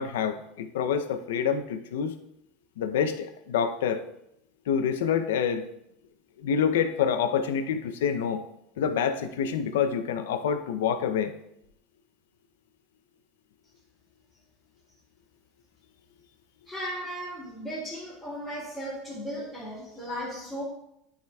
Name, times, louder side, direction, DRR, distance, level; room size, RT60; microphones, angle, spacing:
voice 1, 0.0-2.2 2.8-4.0 4.7-5.7 6.4-8.5 8.8-11.3, left 7 dB, 90° left, 8 dB, 0.6 m, -27 dB
voice 2, 16.6-20.6, equal, 5° left, -11 dB, 2.6 m, -36 dB
10.5 x 4.9 x 2.3 m, 0.80 s
supercardioid pair, 135°, 0 cm